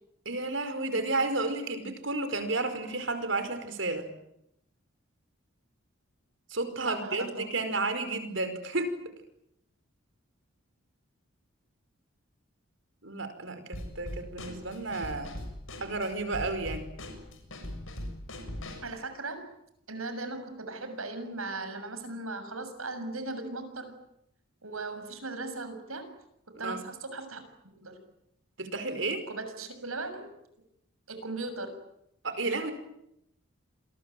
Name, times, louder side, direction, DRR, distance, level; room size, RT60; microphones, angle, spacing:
voice 1, 0.2-4.1 6.5-8.9 13.0-15.3 15.8-16.9 26.5-26.8 28.6-29.2 32.2-32.7, right 3 dB, 60° right, 10 dB, 5.2 m, -32 dB
voice 2, 6.8-7.5 18.8-19.5 19.9-23.9 24.6-26.1 26.6-27.4 27.7-28.0 29.3-30.3 31.1-31.8, right 2 dB, 85° right, 8 dB, 6.9 m, -38 dB
Drum kit / Snare drum, 13.7-18.9, left 1 dB, 70° left, 7.1 m, -40 dB
28.5 x 22.0 x 9.2 m, 0.79 s
head